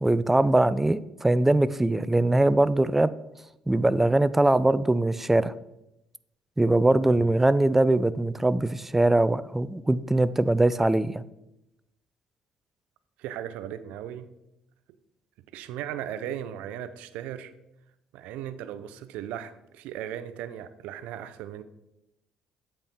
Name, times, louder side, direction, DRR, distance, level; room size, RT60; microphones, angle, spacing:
voice 1, 0.0-3.1 3.7-5.5 6.6-11.2, right 2 dB, 10° right, 0.3 m, -22 dB
voice 2, 13.2-14.3 15.5-17.5 18.1-21.6, right 10 dB, 80° right, 0.4 m, -37 dB
8.2 x 4.3 x 3.5 m
supercardioid pair, 75°, 2 cm